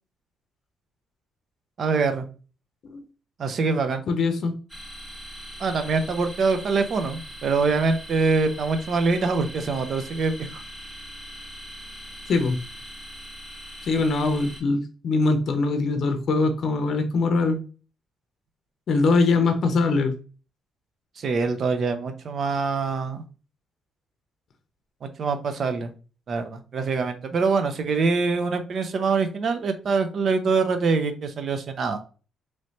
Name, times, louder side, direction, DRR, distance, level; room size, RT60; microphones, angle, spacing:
voice 1, 1.8-2.3 3.4-4.0 5.6-10.6 21.2-23.2 25.0-25.9 26.3-32.0, right 4 dB, 55° right, 8 dB, 0.6 m, -24 dB
voice 2, 4.1-4.6 12.3-12.6 13.8-17.6 18.9-20.1, left 3 dB, 60° left, 6 dB, 0.6 m, -22 dB
sound 1, 4.7-14.6, equal, 5° right, 1.2 m, -41 dB
3.1 x 3.1 x 2.7 m, 0.37 s
cardioid pair, 90°, 0 cm